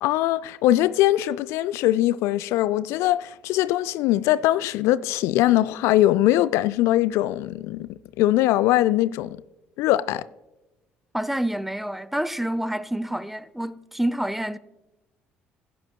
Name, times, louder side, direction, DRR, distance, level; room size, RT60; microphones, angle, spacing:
voice 1, 0.0-7.9 8.2-9.4 9.8-10.2, left 14 dB, 65° left, 0.3 m, -21 dB
voice 2, 11.1-14.6, right 1 dB, 5° right, 0.6 m, -28 dB
16.5 x 10.5 x 2.3 m
figure-of-eight pair, 50°, 5 cm